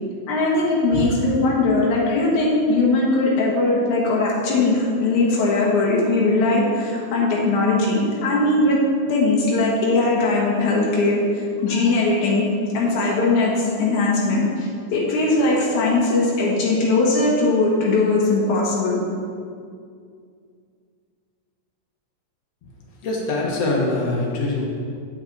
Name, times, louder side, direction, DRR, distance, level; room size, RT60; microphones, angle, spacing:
voice 1, 0.3-8.8 9.0-12.4 12.7-19.0, left 2 dB, 90° left, -4 dB, 2.7 m, -20 dB
voice 2, 23.0-24.7, left 2 dB, 60° left, -2 dB, 2.2 m, -23 dB
8.3 x 7.9 x 3.9 m, 2.2 s
omnidirectional pair, 3.3 m